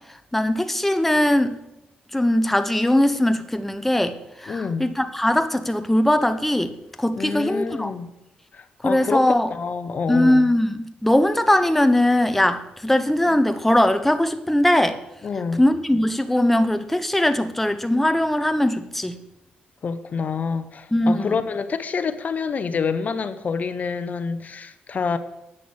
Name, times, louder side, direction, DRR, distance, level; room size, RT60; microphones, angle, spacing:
voice 1, 0.0-1.6 2.1-7.9 8.8-9.5 10.1-15.0 15.6-19.2 20.9-21.4, left 1 dB, 5° left, 0.7 m, -20 dB
voice 2, 4.5-4.9 7.2-8.1 8.5-10.5 15.2-15.6 19.8-25.2, left 5 dB, 50° left, 0.8 m, -27 dB
8.7 x 6.1 x 7.7 m
cardioid pair, 75°, 3 cm